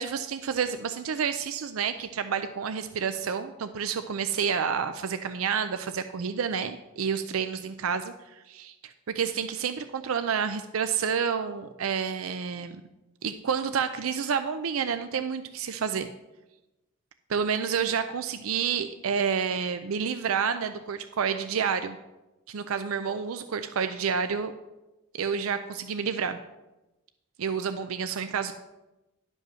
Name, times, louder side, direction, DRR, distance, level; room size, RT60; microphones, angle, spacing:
voice 1, 0.0-8.1 8.5-12.7 13.2-16.1 17.3-22.0 22.5-24.5 25.1-26.4 27.4-28.5, right 6 dB, 90° right, 10 dB, 0.5 m, -29 dB
11.0 x 5.4 x 6.1 m, 1.0 s
head